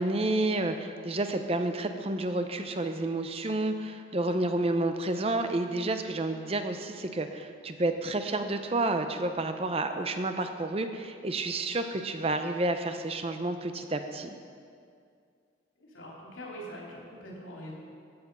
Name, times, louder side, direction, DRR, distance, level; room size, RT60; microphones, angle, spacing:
voice 1, 0.0-14.4, right 2 dB, 30° right, 7 dB, 0.6 m, -30 dB
voice 2, 15.7-17.7, equal, 85° left, -4 dB, 3.5 m, -43 dB
14.0 x 8.4 x 5.4 m, 2.3 s
head